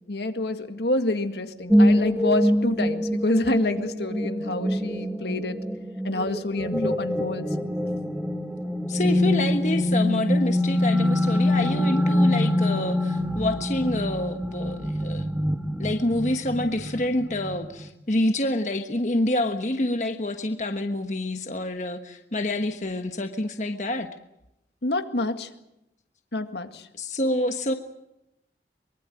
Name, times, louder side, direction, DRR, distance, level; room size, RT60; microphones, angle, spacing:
voice 1, 0.1-5.6 6.0-7.5 24.8-25.5 26.3-26.9, left 2 dB, 75° left, 7 dB, 2.0 m, -27 dB
sound 1, 1.7-17.9, left 1 dB, 5° right, 1.4 m, -24 dB
voice 2, 8.9-15.2 15.8-24.1 26.9-27.7, left 1 dB, 45° left, 6 dB, 1.3 m, -27 dB
24.0 x 23.0 x 7.7 m, 0.87 s
head